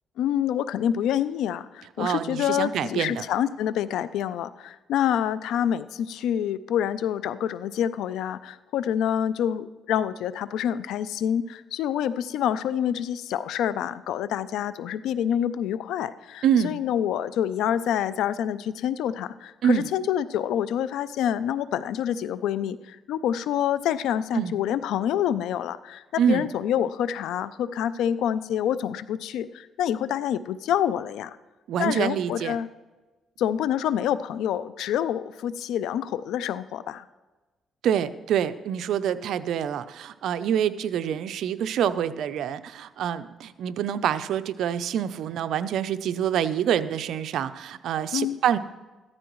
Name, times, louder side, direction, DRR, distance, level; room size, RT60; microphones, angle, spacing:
voice 1, 0.2-31.4 31.8-32.7 33.4-37.0 48.1-48.4, left 10 dB, 85° left, 15 dB, 0.4 m, -27 dB
voice 2, 2.0-3.2 16.4-16.8 19.6-19.9 24.3-24.5 26.2-26.5 31.7-32.6 37.8-48.6, right 9 dB, 75° right, 12 dB, 0.6 m, -26 dB
14.5 x 13.0 x 3.1 m, 1.2 s
cardioid pair, 90°, 0 cm